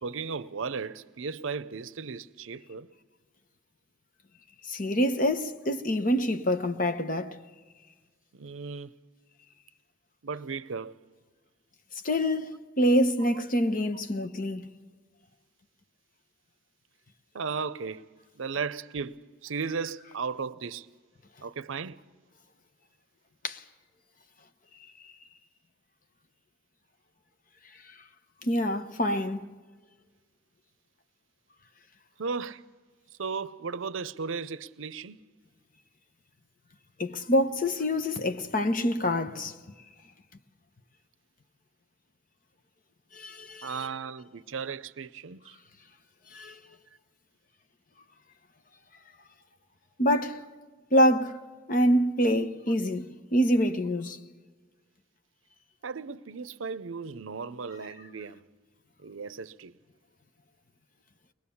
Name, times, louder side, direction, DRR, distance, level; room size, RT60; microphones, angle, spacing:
voice 1, 0.0-2.9 8.3-8.9 10.2-11.0 13.2-13.3 13.6-13.7 17.3-18.1 18.4-20.9 21.4-22.0 32.2-32.6 33.2-35.2 43.6-45.6 55.8-58.4 59.0-59.7, right 5 dB, 80° right, 0.6 m, -35 dB
voice 2, 4.7-7.4 12.0-14.6 23.4-23.6 28.4-29.4 37.0-39.5 43.1-43.7 46.3-46.6 50.0-50.4 50.9-51.4 51.7-54.2, equal, 40° left, 0.9 m, -26 dB
22.5 x 20.5 x 7.1 m
head